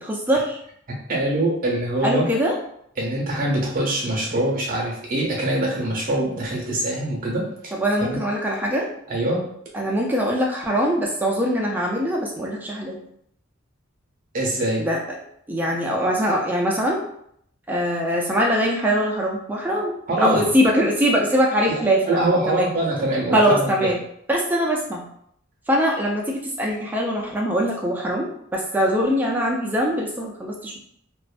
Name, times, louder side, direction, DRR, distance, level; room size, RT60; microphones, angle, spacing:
voice 1, 0.0-0.6 2.0-2.6 7.7-8.9 9.7-13.0 14.8-17.0 17.7-19.9 20.2-22.7 23.3-24.0 24.3-25.0 25.7-30.8, equal, 10° right, -2 dB, 0.3 m, -22 dB
voice 2, 0.9-2.3 3.0-7.5 8.0-8.2 9.1-9.4 14.3-14.8 20.1-20.5 21.7-21.8 22.0-23.9, right 1 dB, 45° right, -2 dB, 0.7 m, -23 dB
2.4 x 2.1 x 2.4 m, 0.70 s
head